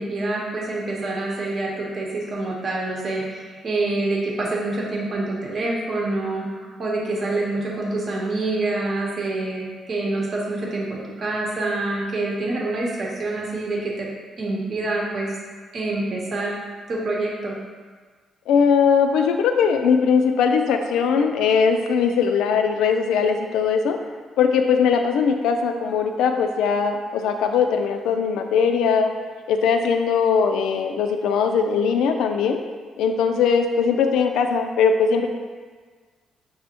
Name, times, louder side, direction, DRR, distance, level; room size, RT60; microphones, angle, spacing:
voice 1, 0.0-14.1 14.4-15.4 15.7-16.6 16.9-17.6, right 2 dB, 50° right, -3 dB, 0.8 m, -26 dB
voice 2, 18.5-24.0 24.4-29.1 29.5-32.6 33.0-35.3, left 6 dB, 85° left, 5 dB, 0.3 m, -20 dB
6.0 x 2.0 x 2.8 m, 1.5 s
cardioid pair, 90°, 0 cm